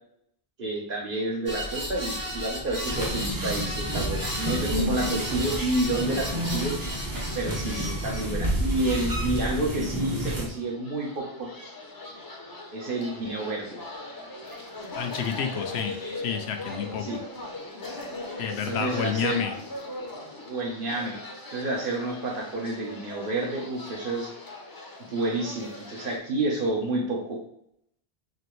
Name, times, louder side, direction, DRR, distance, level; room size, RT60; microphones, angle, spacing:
voice 1, 0.6-6.7 7.3-11.2 12.7-13.8 17.0-17.2 18.7-19.4 20.5-21.2 21.5-24.3 25.1-27.4, right 2 dB, 60° right, -1 dB, 1.1 m, -29 dB
sound 1, 1.5-8.2, equal, 80° right, 1.5 m, -34 dB
sound 2, 2.8-10.5, equal, 25° right, 0.6 m, -30 dB
sound 3, 10.4-26.2, left 2 dB, 25° left, 0.5 m, -39 dB
voice 2, 14.9-16.0 16.2-17.0 18.4-19.5, left 8 dB, 85° left, 6 dB, 0.8 m, -29 dB
4.2 x 3.0 x 3.1 m, 0.73 s
omnidirectional pair, 1.0 m